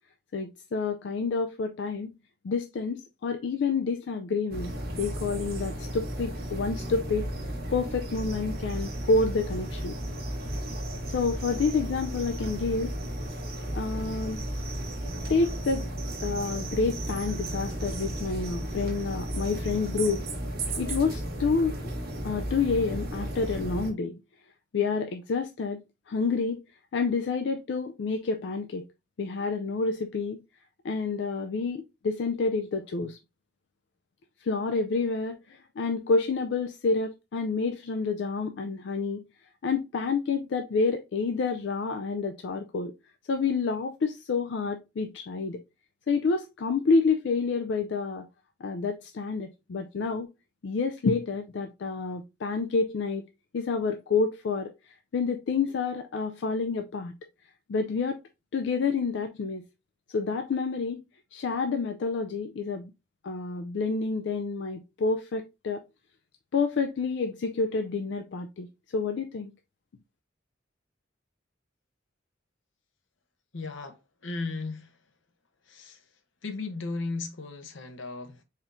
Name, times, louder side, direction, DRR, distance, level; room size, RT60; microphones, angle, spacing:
voice 1, 0.3-2.1 2.4-7.3 7.7-10.0 11.0-13.0 13.7-14.4 15.3-15.9 16.2-20.2 20.8-21.8 22.2-24.2 24.7-26.6 26.9-28.8 29.2-30.4 30.8-33.2 34.4-39.2 39.6-42.9 43.3-45.6 46.1-48.3 48.6-50.3 50.6-53.2 53.5-57.1 57.7-58.2 58.5-59.6 60.1-61.0 61.3-62.9 63.2-65.8 66.5-68.7 68.9-69.5, left 4 dB, 65° left, 0.4 m, -28 dB
sound 1, 4.5-23.9, right 1 dB, 50° right, 1.1 m, -34 dB
voice 2, 73.5-75.0 75.6-76.1 76.4-78.4, left 3 dB, 80° left, 0.8 m, -36 dB
4.3 x 3.6 x 2.5 m
head